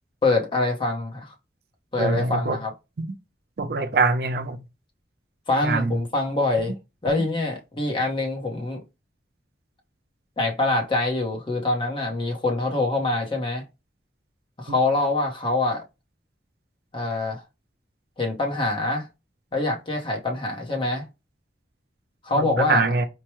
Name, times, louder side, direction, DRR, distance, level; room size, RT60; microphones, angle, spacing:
voice 1, 0.2-1.3 1.9-2.7 5.5-6.7 7.0-8.8 10.4-13.6 14.6-15.8 16.9-17.4 18.2-19.1 19.5-21.0 22.2-22.9, left 2 dB, 30° left, 0.8 m, -25 dB
voice 2, 2.0-2.6 3.6-4.6 5.6-5.9 22.4-23.1, right 3 dB, 60° right, 0.5 m, -23 dB
4.5 x 2.2 x 3.0 m
head